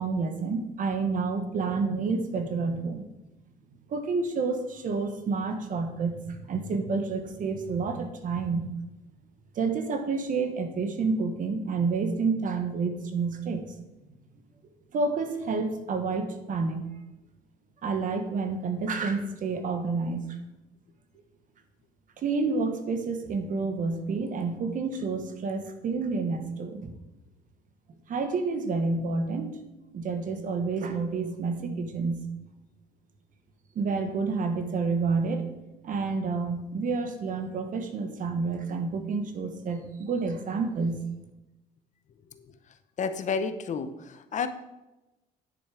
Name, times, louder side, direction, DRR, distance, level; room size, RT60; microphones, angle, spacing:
voice 1, 0.0-3.0 3.9-8.7 9.5-13.7 14.9-16.9 17.8-20.4 22.2-26.9 28.1-29.6 29.9-32.2 33.7-35.5 35.8-41.0, right 4 dB, 50° right, 7 dB, 1.4 m, -29 dB
voice 2, 43.0-44.5, left 5 dB, 45° left, 10 dB, 0.8 m, -31 dB
10.0 x 6.7 x 5.0 m, 1.0 s
cardioid pair, 110°, 17 cm